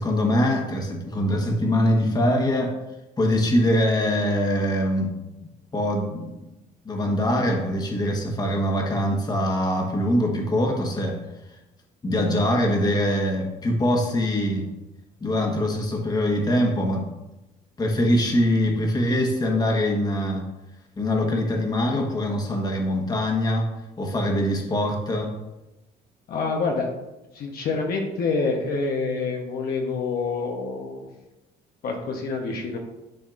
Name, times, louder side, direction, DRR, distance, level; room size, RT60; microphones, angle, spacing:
voice 1, 0.0-2.7 3.2-5.1 5.4-6.4 6.8-11.2 12.0-14.7 15.2-17.1 17.8-20.5 21.0-23.7 24.0-25.3, left 1 dB, 25° left, 1 dB, 1.3 m, -23 dB
voice 2, 26.3-26.9 27.3-31.1 31.8-32.8, left 4 dB, 65° left, 1 dB, 1.1 m, -27 dB
10.5 x 4.2 x 2.6 m, 0.98 s
cardioid pair, 110°, 17 cm